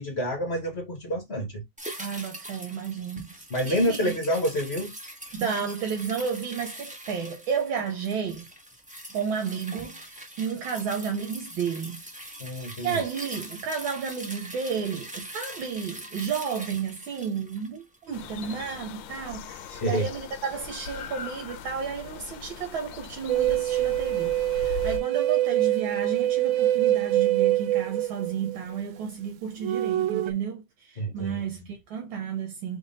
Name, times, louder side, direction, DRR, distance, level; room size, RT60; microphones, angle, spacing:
voice 1, 0.0-1.6 3.5-4.9 12.4-13.0 19.7-20.1 31.0-31.4, equal, 40° left, 1.2 m, -28 dB
sound 1, 1.8-18.3 18.6-18.7, right 1 dB, 10° right, 0.3 m, -42 dB
voice 2, 2.0-4.2 5.3-8.4 9.1-12.0 12.3-32.8, right 6 dB, 75° right, 1.6 m, -32 dB
sound 2, 18.1-25.0, left 8 dB, 75° left, 1.2 m, -40 dB
sound 3, 23.3-28.8 29.6-30.3, right 14 dB, 90° right, 1.5 m, -25 dB
3.5 x 3.5 x 4.0 m
omnidirectional pair, 2.3 m